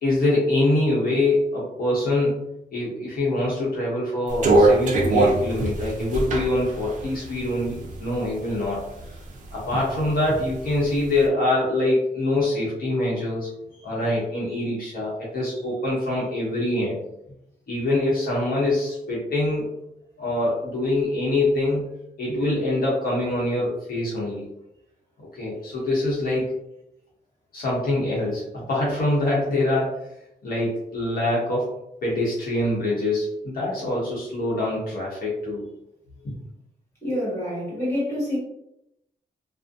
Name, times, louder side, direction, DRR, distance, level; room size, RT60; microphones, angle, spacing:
voice 1, 0.0-2.4 2.7-9.2 9.5-13.5 13.8-17.0 17.7-19.7 20.2-21.9 22.2-24.5 25.2-26.5 27.5-30.1 30.4-31.8 32.0-35.7, left 1 dB, 60° left, -6 dB, 0.9 m, -24 dB
sound 1, 4.3-8.3 8.7-9.7 10.1-11.1, right 2 dB, 50° right, 0.4 m, -21 dB
voice 2, 37.0-38.4, left 1 dB, 15° left, -6 dB, 1.2 m, -27 dB
2.5 x 2.1 x 2.5 m, 0.81 s
wide cardioid pair, 160°, 17 cm